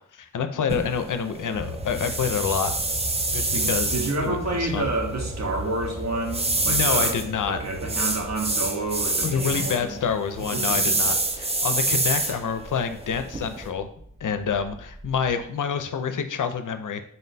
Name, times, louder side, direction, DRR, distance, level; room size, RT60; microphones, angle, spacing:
voice 1, 0.1-2.7 3.3-4.9 6.7-7.6 9.2-13.9 14.2-17.0, left 7 dB, 75° left, 9 dB, 0.5 m, -27 dB
sound 1, 0.7-13.7, right 2 dB, 20° right, 0.4 m, -28 dB
sound 2, 1.5-15.4, equal, 80° right, 1.4 m, -38 dB
voice 2, 3.5-7.2 7.5-9.9 10.5-10.9, right 2 dB, 60° right, 0 dB, 0.9 m, -29 dB
4.0 x 2.2 x 3.9 m, 0.67 s
wide cardioid pair, 90°, 31 cm